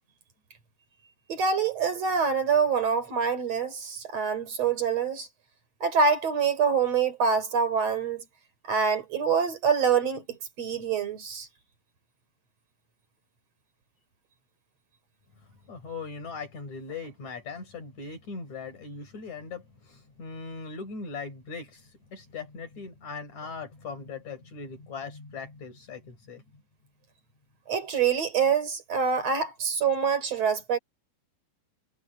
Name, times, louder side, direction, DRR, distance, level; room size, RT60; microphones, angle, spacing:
voice 1, 1.3-5.3 5.8-8.2 8.6-11.5 27.7-30.8, right 6 dB, 60° right, 4.8 m, -25 dB
voice 2, 15.4-26.4, left 4 dB, 70° left, 5.8 m, -40 dB
omnidirectional pair, 3.4 m